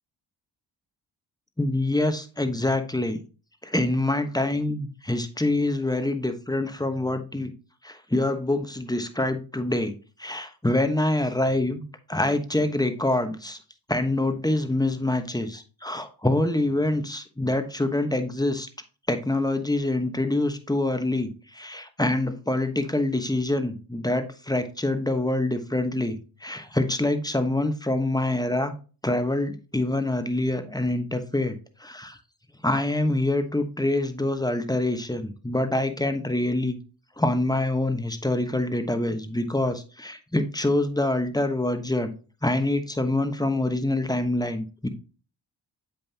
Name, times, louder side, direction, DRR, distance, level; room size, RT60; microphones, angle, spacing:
voice 1, 1.6-3.2 3.6-7.5 7.8-9.9 10.2-11.8 12.1-13.6 13.9-18.7 19.1-28.7 29.0-32.2 32.6-36.8 37.2-42.1 42.4-44.9, left 1 dB, 10° left, 1.1 m, -25 dB
7.7 x 5.4 x 2.8 m
supercardioid pair, 40°, 47 cm